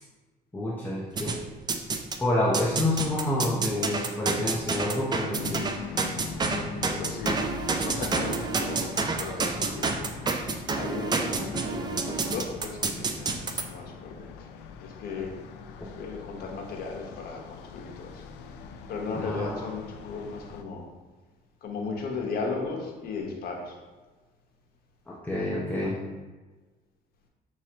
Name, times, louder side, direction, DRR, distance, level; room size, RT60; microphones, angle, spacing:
voice 1, 0.5-1.4 2.2-5.7 19.1-19.7 25.2-26.0, left 1 dB, 10° left, -6 dB, 0.7 m, -28 dB
sound 1, 1.2-2.2 2.5-13.6, right 4 dB, 25° right, 0.4 m, -29 dB
sound 2, 5.3-20.6, left 6 dB, 90° left, 0.4 m, -42 dB
voice 2, 6.5-7.4 7.8-10.0 10.7-14.5 14.8-15.3 15.7-18.2 18.9-20.9 21.6-23.8, left 4 dB, 65° left, 0 dB, 1.0 m, -36 dB
6.0 x 3.1 x 2.9 m, 1.3 s
cardioid pair, 110°, 17 cm